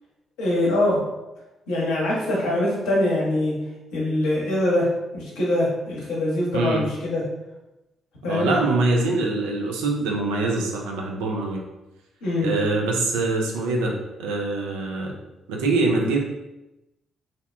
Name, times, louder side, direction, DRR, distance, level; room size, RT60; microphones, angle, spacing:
voice 1, 0.4-1.0 1.7-3.5 3.9-4.9 5.1-7.2 8.2-8.5 12.2-12.5, left 1 dB, 70° left, -5 dB, 0.7 m, -23 dB
voice 2, 6.5-6.8 8.3-11.6 12.4-13.9 14.2-15.1 15.5-16.2, right 2 dB, 70° right, 0 dB, 0.4 m, -24 dB
2.7 x 2.1 x 2.3 m, 0.97 s
figure-of-eight pair, 40°, 0 cm